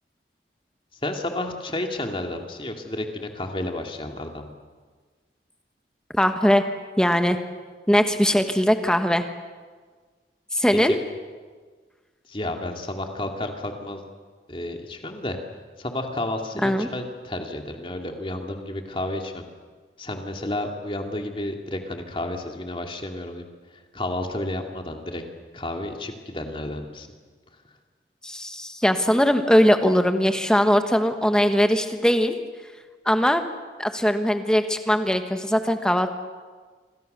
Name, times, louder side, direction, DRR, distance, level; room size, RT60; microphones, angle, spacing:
voice 1, 0.9-4.5 10.7-11.0 12.3-14.0 14.5-15.4 15.8-19.4 20.0-23.5 23.7-25.2 25.5-27.1, left 1 dB, 30° left, 3 dB, 2.6 m, -31 dB
voice 2, 6.1-6.6 7.0-7.4 7.9-9.2 10.5-10.9 16.6-16.9 28.2-32.4 33.0-33.4 33.8-36.1, equal, 5° left, 7 dB, 1.4 m, -20 dB
27.5 x 24.5 x 6.8 m, 1.5 s
head